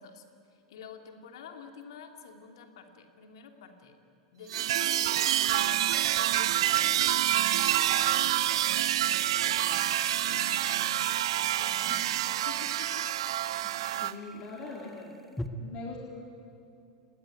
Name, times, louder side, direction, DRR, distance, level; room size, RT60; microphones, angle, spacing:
voice 1, 0.0-4.0 4.3-8.9 9.5-9.8 10.2-10.7 11.6-12.1 12.4-13.0, left 6 dB, 60° left, 4 dB, 3.0 m, -49 dB
sound 1, 1.8-1.9 5.3-15.5, left 1 dB, 5° left, 1.6 m, -50 dB
sound 2, 4.5-14.1, right 13 dB, 60° right, 0.7 m, -27 dB
voice 2, 13.6-15.1 15.6-16.0, left 3 dB, 35° left, -1 dB, 3.9 m, -42 dB
30.0 x 19.0 x 9.7 m, 2.6 s
figure-of-eight pair, 85°, 3 cm